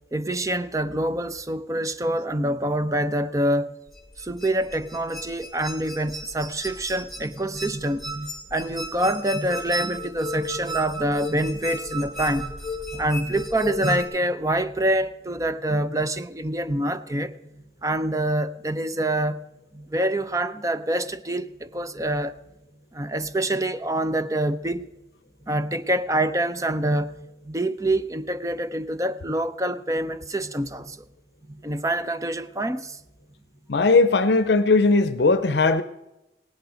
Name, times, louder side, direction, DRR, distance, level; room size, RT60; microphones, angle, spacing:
voice 1, 0.1-3.7 4.2-12.5 12.9-17.3 17.8-19.4 19.7-22.4 22.9-24.9 25.5-31.0 31.5-33.0, right 1 dB, 20° right, 0.5 m, -26 dB
sound 1, 3.9-14.0, equal, ahead, 2.8 m, -34 dB
voice 2, 33.7-35.8, left 3 dB, 70° left, 0.6 m, -18 dB
17.5 x 10.5 x 5.0 m
head